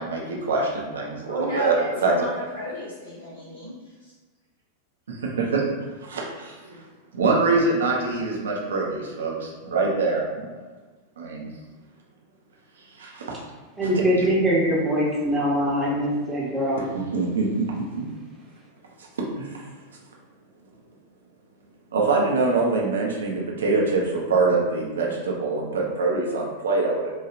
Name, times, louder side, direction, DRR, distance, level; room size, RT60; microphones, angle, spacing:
voice 1, 0.0-1.8 2.0-2.3 5.1-5.6 6.0-6.6 7.1-10.5 11.2-11.5 13.0-13.4 13.8-14.2 16.8-17.6 19.4-19.6 21.9-27.1, right 3 dB, 65° right, -2 dB, 0.6 m, -24 dB
voice 2, 1.2-4.1 6.7-6.8, equal, 85° left, -9 dB, 0.6 m, -33 dB
voice 3, 13.8-16.8, equal, 15° right, -5 dB, 0.8 m, -22 dB
3.1 x 2.3 x 2.4 m, 1.2 s
figure-of-eight pair, 90°, 0 cm